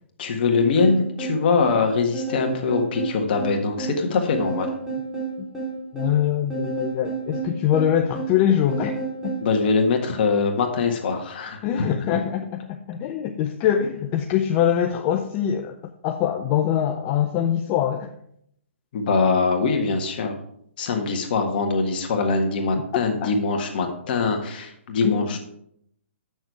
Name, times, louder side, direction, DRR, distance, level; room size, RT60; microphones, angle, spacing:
voice 1, 0.2-4.7 9.4-11.9 18.9-20.3 20.8-25.4, left 4 dB, 45° left, 4 dB, 1.6 m, -23 dB
sound 1, 0.8-9.5, right 4 dB, ahead, 2.9 m, -31 dB
voice 2, 5.9-9.0 9.2-9.3 11.6-15.8 16.0-18.1 23.2-23.3 25.0-25.4, left 10 dB, 30° left, 5 dB, 0.5 m, -23 dB
7.9 x 6.4 x 4.7 m, 0.71 s
hypercardioid pair, 140°, 7 cm